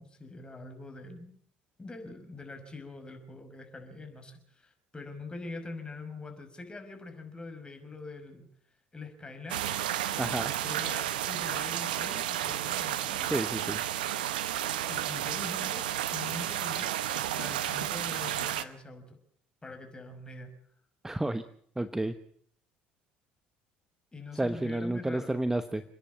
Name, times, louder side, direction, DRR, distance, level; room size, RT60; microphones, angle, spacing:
voice 1, 0.0-1.3 1.8-8.5 8.9-9.6 10.6-13.5 14.7-15.8 16.1-19.2 19.6-20.5 24.1-25.4, left 3 dB, 20° left, 5 dB, 5.8 m, -44 dB
sound 1, 9.5-18.6, right 12 dB, 85° right, 1.0 m, -32 dB
voice 2, 10.2-10.5 13.3-13.8 21.0-21.4 21.8-22.1 24.4-25.8, right 1 dB, 10° right, 11 dB, 1.1 m, -31 dB
29.5 x 10.5 x 8.6 m, 0.63 s
hypercardioid pair, 65°, 5 cm